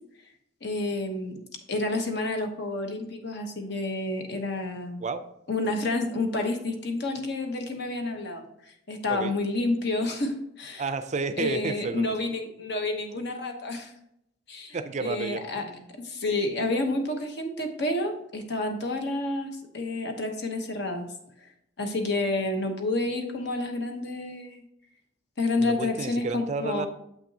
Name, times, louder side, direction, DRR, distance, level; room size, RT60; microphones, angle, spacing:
voice 1, 0.6-1.4 1.7-5.0 5.5-10.8 11.4-13.9 14.5-15.6 16.0-21.1 21.4-21.5 21.8-24.6 25.4-26.9, left 2 dB, 60° left, 4 dB, 1.0 m, -29 dB
voice 2, 10.8-12.1 14.7-15.9 25.6-26.9, right 4 dB, 40° right, 11 dB, 0.4 m, -31 dB
7.6 x 5.9 x 2.8 m, 0.77 s
head